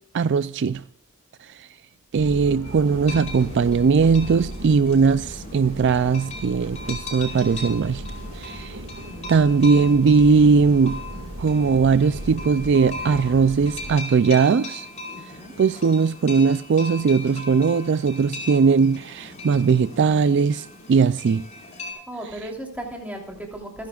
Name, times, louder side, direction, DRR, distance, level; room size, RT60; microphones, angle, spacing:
voice 1, 0.1-0.8 1.4-1.7 2.1-8.0 8.3-8.8 9.3-11.0 11.4-14.9 15.6-21.4, right 5 dB, 55° right, 0.4 m, -19 dB
sound 1, 2.2-13.9, right 1 dB, 75° right, 2.0 m, -37 dB
sound 2, 2.6-21.9, left 2 dB, 30° left, 5.0 m, -39 dB
voice 2, 9.0-9.4 15.1-15.5 22.1-23.9, right 1 dB, 5° right, 3.1 m, -36 dB
28.0 x 10.5 x 2.4 m
head